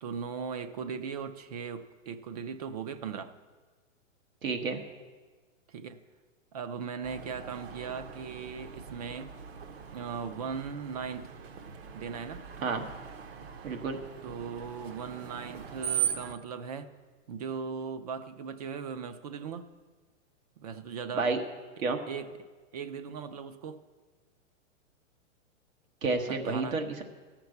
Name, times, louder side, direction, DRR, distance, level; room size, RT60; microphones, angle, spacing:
voice 1, 0.0-3.3 5.7-6.0 6.5-9.3 9.9-11.3 11.9-12.5 14.2-16.9 17.3-19.8 20.6-21.3 22.1-23.8 26.3-26.8, right 6 dB, 30° right, 11 dB, 0.5 m, -38 dB
voice 2, 4.4-4.8 12.6-12.8 13.6-14.0 21.1-21.4 21.8-22.0 26.0-27.0, right 4 dB, 90° right, 4 dB, 1.5 m, -30 dB
Screech, 7.0-16.3, right 9 dB, 50° right, 0.9 m, -39 dB
14.0 x 5.9 x 7.9 m, 1.4 s
hypercardioid pair, 160°, 39 cm